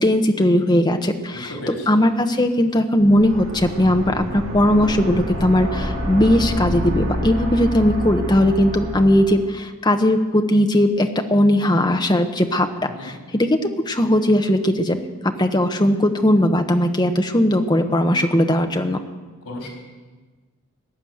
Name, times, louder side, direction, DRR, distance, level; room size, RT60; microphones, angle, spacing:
voice 1, 0.0-1.5 1.9-15.0 15.4-19.0, left 1 dB, 20° left, 5 dB, 0.9 m, -18 dB
voice 2, 1.3-1.9 12.8-13.2 19.4-19.7, left 1 dB, 85° left, -1 dB, 4.4 m, -34 dB
sound 1, 3.0-9.5, equal, 75° right, 3.2 m, -28 dB
17.5 x 9.9 x 7.9 m, 1.3 s
head